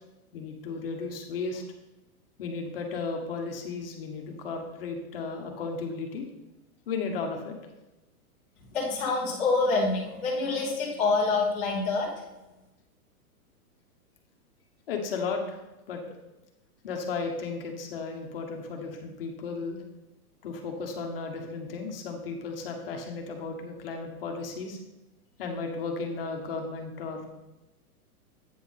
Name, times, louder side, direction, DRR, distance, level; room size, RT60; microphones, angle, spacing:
voice 1, 0.3-1.6 2.4-6.3 6.9-7.6 14.9-15.6 15.9-16.0 16.8-19.8 20.4-24.8 25.4-27.3, left 4 dB, 40° left, 3 dB, 1.1 m, -34 dB
voice 2, 8.7-12.1, left 3 dB, ahead, -13 dB, 0.7 m, -26 dB
8.6 x 5.7 x 3.8 m, 1.0 s
hypercardioid pair, 175°, 46 cm